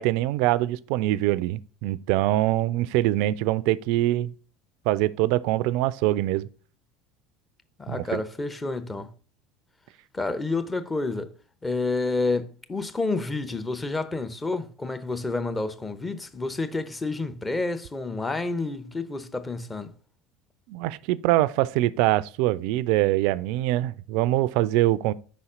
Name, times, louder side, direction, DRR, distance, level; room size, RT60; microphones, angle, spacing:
voice 1, 0.0-4.3 4.9-6.5 7.9-8.2 20.7-25.1, right 16 dB, 65° right, 0.3 m, -24 dB
voice 2, 7.8-9.1 10.1-11.3 11.6-19.9, left 3 dB, 20° left, 0.8 m, -29 dB
5.4 x 4.1 x 5.0 m
hypercardioid pair, 75°, 0 cm